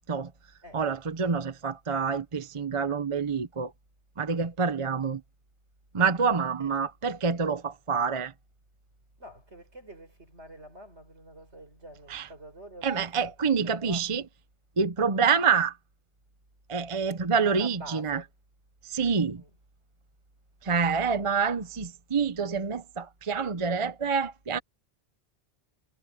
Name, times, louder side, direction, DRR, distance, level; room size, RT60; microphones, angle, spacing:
voice 1, 0.7-3.7 4.2-5.2 5.9-8.3 12.1-12.3 12.8-14.2 14.8-15.7 16.7-18.2 18.8-19.4 20.6-24.6, right 5 dB, 30° right, 0.8 m, -27 dB
voice 2, 9.2-14.1 17.4-18.3 19.4-19.5, equal, 85° right, 7.3 m, -47 dB
omnidirectional pair, 1.1 m